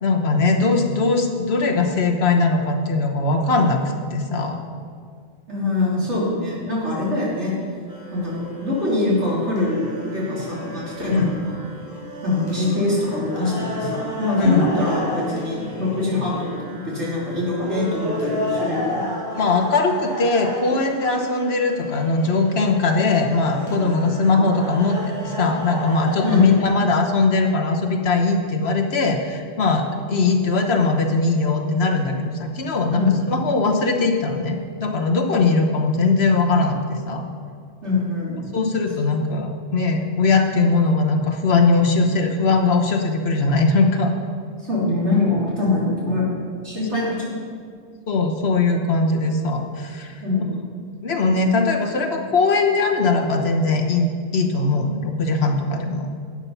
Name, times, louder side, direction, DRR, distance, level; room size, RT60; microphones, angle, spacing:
voice 1, 0.0-3.8 4.1-4.6 11.1-11.3 14.4-14.7 19.3-33.0 33.3-37.2 38.5-44.1 48.1-50.1 51.0-56.1, left 3 dB, 65° left, 3 dB, 1.3 m, -20 dB
voice 2, 5.5-7.5 8.1-11.6 12.2-19.0 26.2-26.5 32.9-33.2 37.8-38.4 44.6-47.4 50.2-50.5, left 2 dB, 80° right, -6 dB, 3.6 m, -23 dB
sound 1, 7.9-26.6, left 1 dB, 20° right, 3.0 m, -32 dB
11.5 x 8.5 x 5.6 m, 2.1 s
omnidirectional pair, 1.2 m